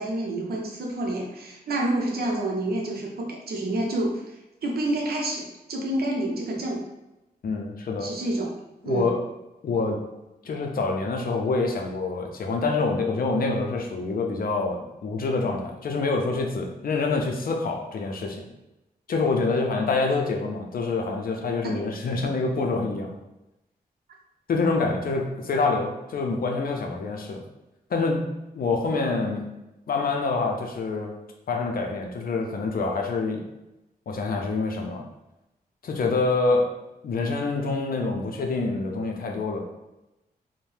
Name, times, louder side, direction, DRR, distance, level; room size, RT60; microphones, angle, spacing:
voice 1, 0.0-4.4 4.6-6.8 8.0-8.6 8.8-9.1 21.6-21.8, right 1 dB, 75° right, 0 dB, 0.6 m, -28 dB
voice 2, 7.4-8.1 8.8-9.2 9.6-10.0 10.4-18.5 19.1-23.2 24.5-27.4 27.9-28.3 28.5-29.5 29.9-31.2 31.5-33.5 34.1-35.1 35.8-36.7 37.0-39.7, left 3 dB, 70° left, 2 dB, 0.5 m, -26 dB
2.7 x 2.1 x 3.2 m, 0.97 s
cardioid pair, 80°, 16 cm